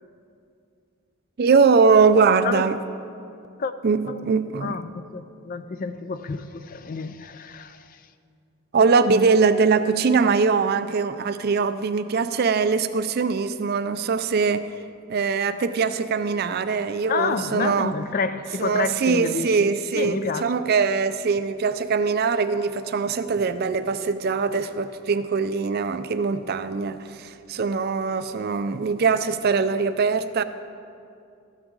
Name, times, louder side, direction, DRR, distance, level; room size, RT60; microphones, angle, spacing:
voice 1, 1.4-2.8 3.8-4.8 8.7-14.7 15.1-17.9 18.6-30.4, right 5 dB, 45° right, 0.4 m, -22 dB
voice 2, 4.6-8.0 17.1-20.5, left 4 dB, 40° left, 0.3 m, -29 dB
13.5 x 8.8 x 3.8 m
head